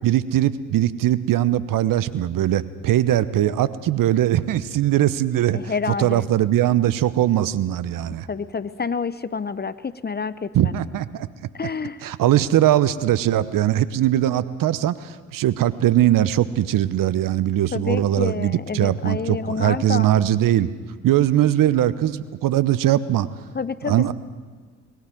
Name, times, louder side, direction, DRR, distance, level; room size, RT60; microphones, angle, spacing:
voice 1, 0.0-5.6 6.0-8.3 10.5-11.3 12.0-20.7 21.0-23.3 23.8-24.1, right 12 dB, 55° right, 16 dB, 0.9 m, -20 dB
voice 2, 5.5-6.3 8.3-10.7 11.5-12.0 17.7-20.1 23.5-24.1, left 5 dB, 25° left, 15 dB, 0.8 m, -28 dB
20.5 x 14.0 x 9.1 m, 1.5 s
hypercardioid pair, 50°, 39 cm